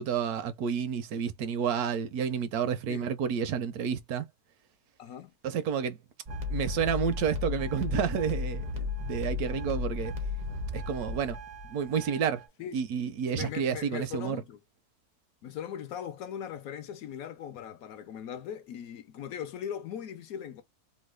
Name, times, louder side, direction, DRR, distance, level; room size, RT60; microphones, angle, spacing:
voice 1, 0.0-4.3 5.4-6.0 6.5-10.1 10.7-11.4 11.6-12.4 12.7-14.4, right 7 dB, 75° right, 1.0 m, -30 dB
voice 2, 5.0-5.3 12.6-12.8 13.3-14.6 15.4-20.6, left 9 dB, 70° left, 1.0 m, -39 dB
sound 1, 6.3-12.5, left 4 dB, 50° right, 0.5 m, -35 dB
3.1 x 2.2 x 3.2 m
omnidirectional pair, 1.7 m